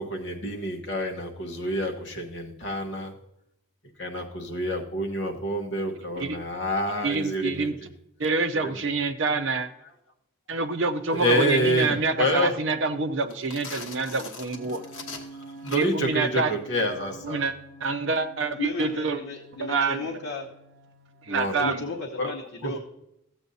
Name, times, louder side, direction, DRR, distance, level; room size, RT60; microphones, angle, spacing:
voice 1, 0.0-3.1 4.0-7.9 8.6-8.7 11.1-12.6 15.6-17.4 21.3-21.6 22.2-22.3 22.6-22.7, equal, 55° left, 1 dB, 1.1 m, -28 dB
voice 2, 7.0-7.8 8.2-9.7 10.5-14.8 15.7-16.5 17.2-17.5 17.8-19.2 19.6-20.1 21.3-21.8, right 3 dB, 60° right, 6 dB, 0.6 m, -26 dB
sound 1, 13.2-16.1, left 4 dB, 70° left, 1.2 m, -41 dB
sound 2, 14.5-21.5, right 2 dB, 30° right, 2.8 m, -48 dB
voice 3, 18.6-20.5 21.6-22.8, left 3 dB, 85° left, -1 dB, 0.9 m, -34 dB
14.0 x 8.0 x 2.7 m, 0.82 s
head